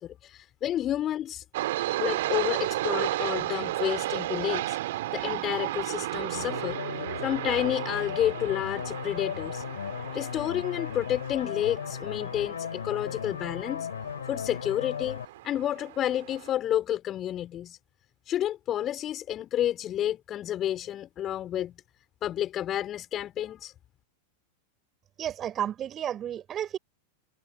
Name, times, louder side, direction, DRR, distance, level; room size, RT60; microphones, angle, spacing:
voice 1, 0.0-1.4 2.0-6.8 7.2-9.6 10.1-13.9 14.3-17.8 18.3-21.7 22.2-23.7, left 11 dB, 30° left, 4.4 m, -30 dB
sound 1, 1.5-16.5, right 16 dB, 55° right, 2.9 m, -34 dB
sound 2, 6.3-15.2, left 8 dB, 65° left, 5.8 m, -36 dB
voice 2, 25.2-26.8, right 10 dB, 30° right, 5.6 m, -32 dB
figure-of-eight pair, 90°, 0 cm